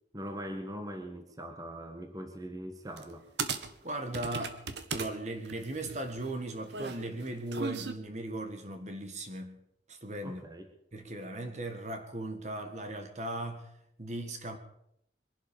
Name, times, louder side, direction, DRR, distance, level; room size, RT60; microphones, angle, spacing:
voice 1, 0.1-3.3 10.2-10.7, equal, 20° right, 1.6 m, -41 dB
sound 1, 3.0-3.1 3.4-5.1 5.4-7.9, right 5 dB, 80° right, 1.3 m, -37 dB
voice 2, 3.8-4.6 4.9-9.6 9.9-10.4 10.9-13.7 14.0-14.6, right 1 dB, 40° right, 1.7 m, -38 dB
23.0 x 11.5 x 5.3 m
head